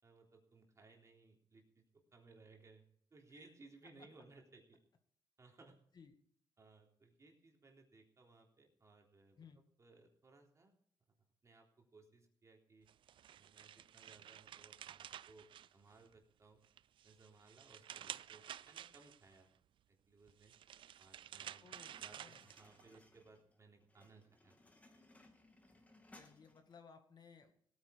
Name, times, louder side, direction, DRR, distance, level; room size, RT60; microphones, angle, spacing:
voice 1, 0.0-2.9 3.1-4.8 5.4-5.8 6.6-9.4 9.8-10.7 11.4-12.9 13.3-16.6 17.0-19.5 19.9-20.6 21.0-21.7 22.0-24.6, right 3 dB, 35° right, 2 dB, 3.4 m, -63 dB
sound 1, 12.9-16.2 16.6-19.4 20.3-23.0, right 10 dB, 65° right, 0.4 m, -52 dB
voice 2, 21.6-22.5 26.1-27.5, left 6 dB, 50° left, 6 dB, 2.1 m, -60 dB
sound 2, 21.7-26.8, left 2 dB, 15° left, 2.4 m, -65 dB
17.0 x 9.5 x 5.2 m, 0.63 s
cardioid pair, 95°, 9 cm